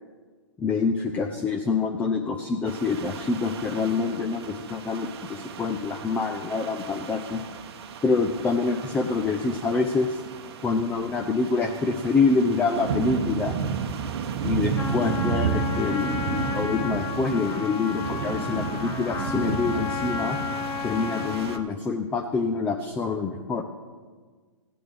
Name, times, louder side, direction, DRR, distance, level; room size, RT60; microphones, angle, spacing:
voice 1, 0.6-7.4 8.0-10.2 10.6-13.6 14.4-20.4 20.8-23.6, left 4 dB, 10° left, 4 dB, 0.4 m, -26 dB
sound 1, 2.7-21.6, right 6 dB, 55° right, 0.9 m, -33 dB
Trumpet, 14.7-21.7, left 5 dB, 45° left, 1.1 m, -32 dB
15.0 x 8.6 x 3.3 m, 1.5 s
hypercardioid pair, 135°, 16 cm